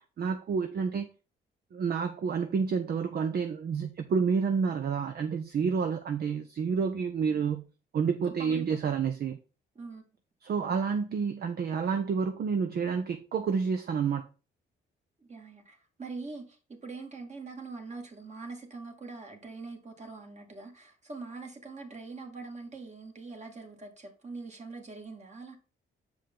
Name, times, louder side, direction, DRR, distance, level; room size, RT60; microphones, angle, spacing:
voice 1, 0.2-1.1 1.7-7.7 7.9-9.4 10.4-14.2, right 6 dB, 50° right, 0.8 m, -29 dB
voice 2, 8.2-9.0 9.8-10.0 15.2-25.6, right 3 dB, 35° right, 2.1 m, -43 dB
7.1 x 4.9 x 3.8 m
cardioid pair, 90°, 20 cm